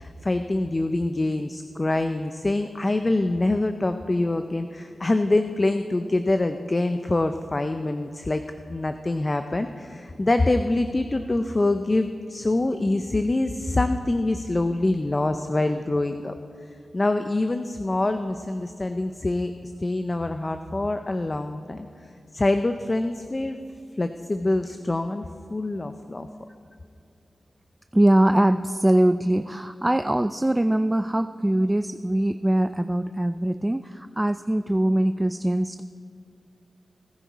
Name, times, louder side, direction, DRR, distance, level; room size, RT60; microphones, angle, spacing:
voice 1, 0.0-8.4 8.7-16.3 16.9-21.9 22.3-23.6 24.0-26.3, left 2 dB, 35° left, 8 dB, 0.6 m, -25 dB
voice 2, 27.9-35.8, right 1 dB, 15° right, 12 dB, 0.3 m, -22 dB
20.0 x 10.0 x 4.1 m, 2.5 s
cardioid pair, 55°, 0 cm